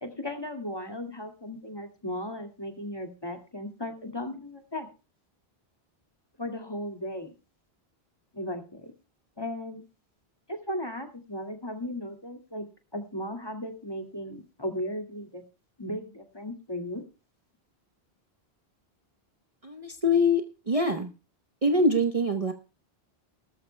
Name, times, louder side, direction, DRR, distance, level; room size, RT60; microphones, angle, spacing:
voice 1, 0.0-4.9 6.4-7.3 8.3-8.9 9.4-9.8 10.5-12.7 12.9-15.4 15.8-17.0, left 1 dB, 25° left, 4 dB, 2.2 m, -36 dB
voice 2, 19.6-21.1 21.6-22.5, left 1 dB, 35° right, 6 dB, 1.1 m, -24 dB
18.0 x 13.5 x 2.2 m, 0.32 s
omnidirectional pair, 1.1 m